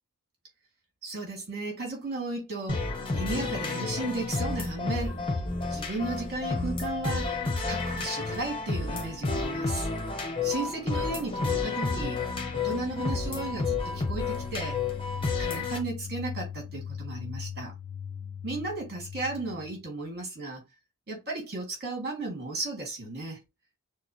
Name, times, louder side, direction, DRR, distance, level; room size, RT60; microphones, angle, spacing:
voice 1, 1.0-5.2 5.7-7.4 7.6-9.9 10.4-12.2 12.5-14.8 15.2-17.7 18.4-20.7 21.1-23.4, right 3 dB, 50° right, 2.5 m, -35 dB
sound 1, 2.7-15.8, left 3 dB, 25° left, 1.0 m, -31 dB
sound 2, 12.1-19.8, left 8 dB, 70° left, 0.6 m, -39 dB
6.3 x 2.2 x 3.1 m
head